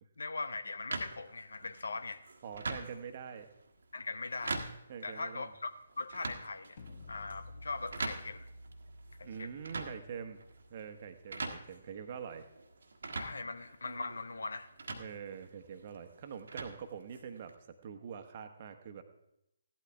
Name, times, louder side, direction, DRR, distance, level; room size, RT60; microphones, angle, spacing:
voice 1, 0.2-2.2 3.9-4.7 5.0-6.8 7.1-8.5 9.2-9.5 13.1-14.7, left 3 dB, 65° left, 11 dB, 0.9 m, -40 dB
sound 1, 0.9-17.5, right 3 dB, 60° right, 1.5 m, -44 dB
voice 2, 2.4-3.5 4.9-5.5 9.2-10.4 10.7-12.5 15.0-17.5 17.8-19.0, right 7 dB, 40° right, 7 dB, 1.2 m, -44 dB
sound 2, 6.8-12.7, left 1 dB, 45° left, 1.3 m, -53 dB
16.0 x 12.0 x 3.5 m, 0.83 s
figure-of-eight pair, 140°, 0 cm